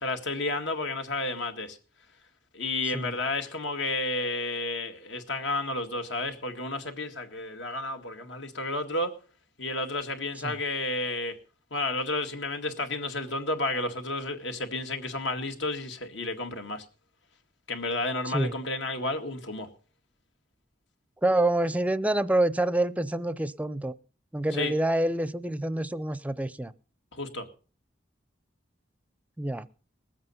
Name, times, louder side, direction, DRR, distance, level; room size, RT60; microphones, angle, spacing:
voice 1, 0.0-1.8 2.5-9.1 9.6-11.4 11.7-16.8 17.7-19.7 24.5-24.7 27.1-27.5, left 2 dB, 70° left, 1.9 m, -31 dB
voice 2, 18.3-18.6 21.2-23.9 24.3-26.7 29.4-29.7, right 1 dB, 10° right, 0.5 m, -27 dB
20.0 x 8.0 x 5.5 m
head